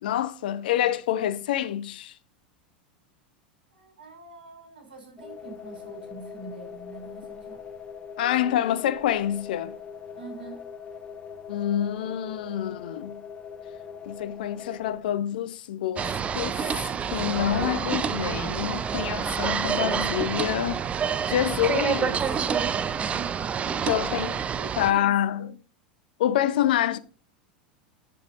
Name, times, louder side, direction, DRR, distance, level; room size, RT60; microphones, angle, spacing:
voice 1, 0.0-2.1 8.2-9.8 11.5-13.2 14.1-16.8 17.1-20.8 21.3-22.2 23.8-24.4 24.8-25.5 26.2-27.0, left 11 dB, 65° left, 0.8 m, -27 dB
voice 2, 3.7-7.6 10.2-10.6 22.9-23.5 24.0-25.5, right 4 dB, 80° right, 3.3 m, -44 dB
sound 1, 5.2-15.0, left 6 dB, 20° left, 1.3 m, -41 dB
sound 2, 16.0-24.9, right 7 dB, 25° right, 0.6 m, -28 dB
9.7 x 7.3 x 2.5 m
figure-of-eight pair, 85°, 5 cm